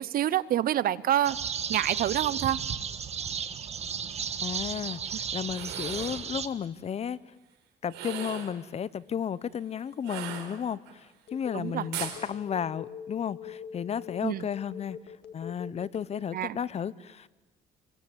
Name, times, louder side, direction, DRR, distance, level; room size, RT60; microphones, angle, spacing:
voice 1, 0.0-1.4 1.7-2.6 11.5-11.9 14.2-14.4 16.3-16.6, right 12 dB, 60° right, 19 dB, 0.9 m, -27 dB
sound 1, 1.2-6.5, right 7 dB, 40° right, 1.6 m, -34 dB
voice 2, 4.4-7.2 7.8-15.0 15.3-17.3, left 8 dB, 40° left, 19 dB, 0.8 m, -33 dB
sound 2, 5.4-6.2 7.9-8.6 10.0-10.9 11.9-12.2, right 11 dB, 85° right, 4.7 m, -38 dB
Telephone, 11.3-16.5, left 8 dB, 65° left, 2.6 m, -43 dB
28.0 x 23.0 x 8.1 m, 1.1 s
cardioid pair, 110°, 17 cm